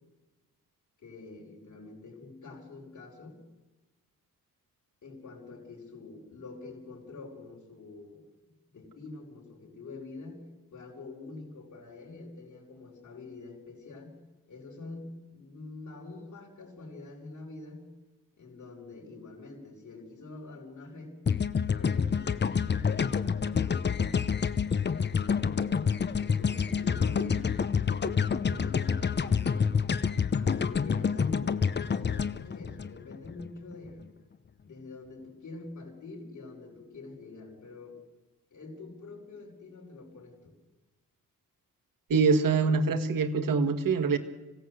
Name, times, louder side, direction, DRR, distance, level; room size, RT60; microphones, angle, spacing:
voice 1, 1.0-3.4 5.0-8.2 8.7-10.4 10.7-14.1 14.5-17.9 18.4-21.1 21.6-24.1 24.8-29.8 30.3-31.5 31.8-34.1 34.6-38.0 38.5-40.6, left 3 dB, 60° left, -2 dB, 5.0 m, -46 dB
sound 1, 21.3-33.5, left 6 dB, 30° left, 0.7 m, -28 dB
voice 2, 42.1-44.2, right 4 dB, 70° right, 8 dB, 1.8 m, -24 dB
26.0 x 16.5 x 7.9 m, 1.2 s
wide cardioid pair, 135°, 34 cm